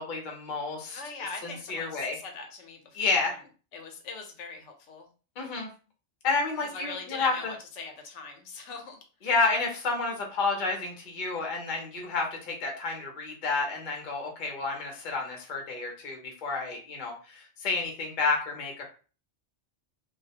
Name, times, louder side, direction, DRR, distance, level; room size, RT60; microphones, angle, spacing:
voice 1, 0.0-1.0 1.4-2.2 2.9-3.3 5.4-5.7 6.2-7.5 9.2-18.8, left 3 dB, 50° left, 1 dB, 0.7 m, -30 dB
voice 2, 0.9-3.4 3.7-5.1 6.7-9.0, left 4 dB, 90° left, 4 dB, 1.0 m, -41 dB
2.3 x 2.1 x 2.7 m, 0.36 s
omnidirectional pair, 1.2 m